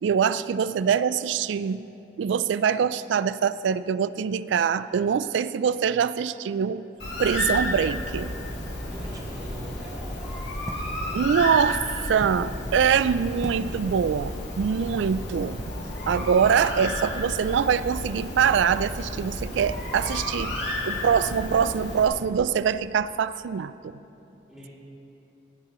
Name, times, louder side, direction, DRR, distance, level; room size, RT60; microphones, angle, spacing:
voice 1, 0.0-1.9 2.2-6.8 7.2-8.3 11.1-15.6 16.1-20.6 20.9-23.7, right 7 dB, 80° right, 15 dB, 0.3 m, -24 dB
Bird, 7.0-22.1, left 1 dB, 70° left, 2.6 m, -32 dB
voice 2, 8.9-10.4 24.5-24.7, equal, 5° right, -9 dB, 2.7 m, -45 dB
sound 1, 8.9-10.9 12.2-12.4 13.4-13.7 14.0-14.3 14.6-14.8, right 1 dB, 20° right, 0.7 m, -40 dB
17.5 x 10.5 x 3.0 m, 2.8 s
head